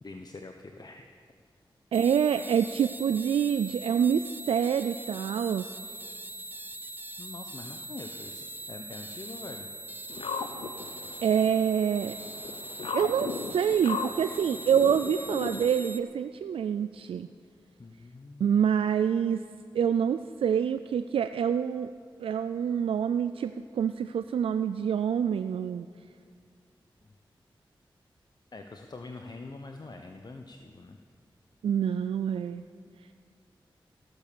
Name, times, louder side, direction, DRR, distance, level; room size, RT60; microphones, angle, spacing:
voice 1, 0.0-1.0 7.2-9.7 17.8-18.5 28.5-31.0, left 3 dB, 50° left, 5 dB, 1.0 m, -44 dB
sound 1, 1.9-16.0, right 2 dB, 20° right, 1.0 m, -42 dB
voice 2, 1.9-5.7 11.2-12.2 12.9-17.3 18.4-19.4 19.7-21.9 22.2-25.9 31.6-32.6, right 8 dB, 85° right, 10 dB, 0.3 m, -26 dB
sound 2, 10.1-15.7, left 5 dB, 85° left, 0.8 m, -37 dB
15.5 x 12.5 x 7.0 m, 2.1 s
cardioid pair, 45°, 9 cm